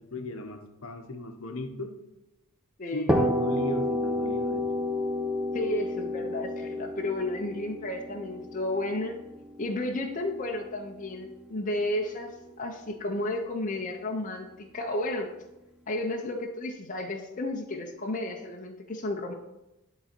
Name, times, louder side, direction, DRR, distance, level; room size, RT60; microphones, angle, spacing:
voice 1, 0.0-2.0 2.9-4.7, left 2 dB, 65° left, 6 dB, 0.8 m, -36 dB
voice 2, 2.8-3.1 5.5-9.1 9.6-14.5 14.7-15.3 15.9-19.3, left 1 dB, 35° left, 2 dB, 0.6 m, -32 dB
sound 1, 3.1-10.8, left 1 dB, 5° right, 0.7 m, -30 dB
10.5 x 4.0 x 4.4 m, 0.97 s
head